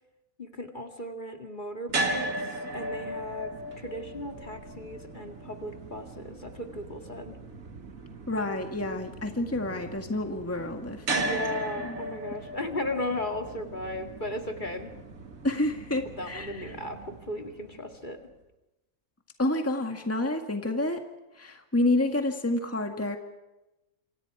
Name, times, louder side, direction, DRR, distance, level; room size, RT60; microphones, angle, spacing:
voice 1, 0.4-7.4 11.1-14.9 16.2-18.2, left 1 dB, 35° left, 4 dB, 2.3 m, -36 dB
sound 1, 1.9-18.0, right 2 dB, 85° right, 2.2 m, -37 dB
voice 2, 8.3-11.4 11.8-12.0 15.4-16.6 19.4-21.0 21.4-23.2, left 2 dB, 10° left, 4 dB, 1.8 m, -29 dB
28.0 x 26.0 x 4.8 m, 1.0 s
omnidirectional pair, 1.4 m